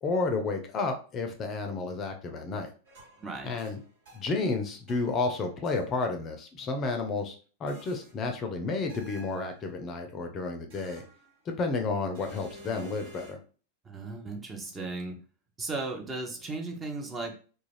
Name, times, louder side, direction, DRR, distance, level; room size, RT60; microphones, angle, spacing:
voice 1, 0.0-2.7 3.4-3.8 4.1-7.4 7.6-11.0 11.5-13.4, left 3 dB, 35° left, 5 dB, 0.5 m, -31 dB
sound 1, 2.8-4.5 4.9-5.8 7.7-8.3 8.9-9.7 10.7-11.6 12.1-13.3, equal, 65° right, 1.3 m, -51 dB
voice 2, 3.2-3.5 13.8-15.2 15.6-17.3, right 3 dB, 20° right, 2 dB, 0.6 m, -36 dB
2.3 x 2.1 x 3.2 m, 0.39 s
hypercardioid pair, 100°, 0 cm